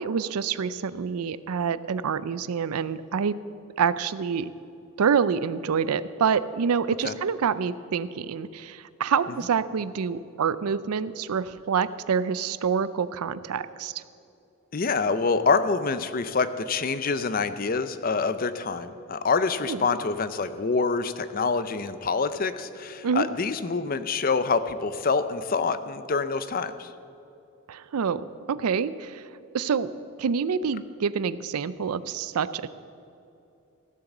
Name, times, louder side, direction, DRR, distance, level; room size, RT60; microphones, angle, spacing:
voice 1, 0.0-3.4 3.8-4.5 5.0-14.0 19.7-19.8 23.0-23.3 27.7-29.2 29.5-29.9 30.2-32.7, right 6 dB, 85° right, 15 dB, 0.4 m, -27 dB
voice 2, 14.7-26.9, left 4 dB, 40° left, 12 dB, 0.5 m, -26 dB
15.5 x 7.6 x 7.2 m, 2.7 s
head